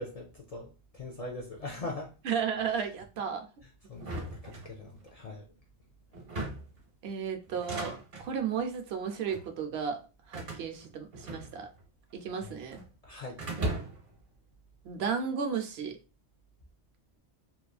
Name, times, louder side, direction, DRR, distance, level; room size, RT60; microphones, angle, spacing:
voice 1, 0.0-2.1 3.9-5.5 12.4-12.6 13.0-13.4, left 2 dB, 50° left, 0.4 m, -41 dB
voice 2, 2.2-3.5 7.0-10.0 10.3-11.7 12.1-12.8 14.8-15.9, right 6 dB, 75° right, 0.8 m, -33 dB
sound 1, 4.0-5.1 6.1-6.8 7.5-8.3 9.1-9.5 10.3-11.8 12.1-12.9 13.4-14.1, right 2 dB, 55° right, 1.1 m, -38 dB
3.0 x 2.5 x 2.3 m
omnidirectional pair, 1.1 m